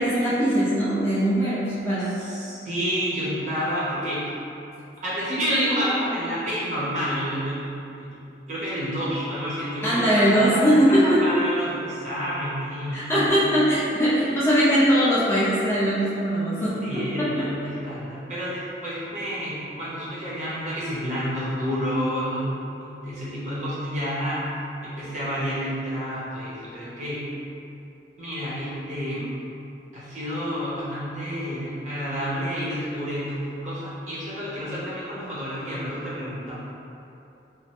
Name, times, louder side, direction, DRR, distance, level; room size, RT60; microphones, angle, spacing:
voice 1, 0.0-2.2 9.8-11.2 12.9-16.8 17.2-17.5, equal, 15° left, -10 dB, 0.4 m, -21 dB
voice 2, 2.2-4.3 5.0-8.2 8.5-13.4 16.8-22.5 23.0-24.5 24.8-27.2 28.2-29.3 29.9-36.6, equal, 40° right, -9 dB, 0.7 m, -29 dB
3.1 x 2.1 x 2.8 m, 2.8 s
head